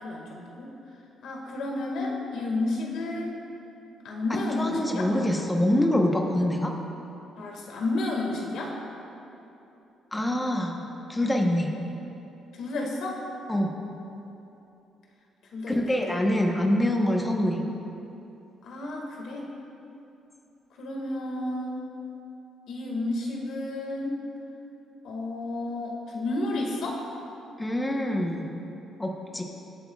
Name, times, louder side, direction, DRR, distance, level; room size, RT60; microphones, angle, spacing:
voice 1, 0.0-0.7 1.2-3.4 4.0-5.1 7.4-8.7 12.5-13.2 15.5-16.2 18.6-19.5 20.8-21.9 22.7-24.2 25.0-27.0, left 2 dB, 70° left, 0 dB, 1.9 m, -31 dB
voice 2, 4.6-6.7 10.1-10.8 11.1-11.7 13.5-13.7 15.7-17.6 27.6-28.5 29.0-29.4, left 1 dB, 10° left, 0 dB, 1.0 m, -25 dB
23.5 x 8.6 x 2.4 m, 2.9 s
cardioid pair, 120°, 0 cm